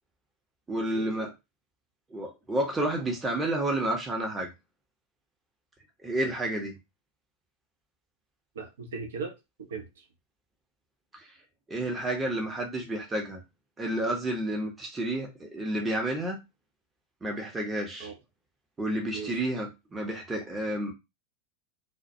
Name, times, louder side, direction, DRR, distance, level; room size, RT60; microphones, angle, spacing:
voice 1, 0.7-1.3 2.1-4.5 6.0-6.7 11.1-11.2 11.7-13.4 13.8-16.4 17.2-18.1 18.8-20.9, right 1 dB, 15° right, 0.7 m, -30 dB
voice 2, 8.5-10.0 18.0-18.2 19.1-19.4, right 5 dB, 60° right, 0.6 m, -39 dB
2.3 x 2.1 x 2.6 m
figure-of-eight pair, 90°, 0 cm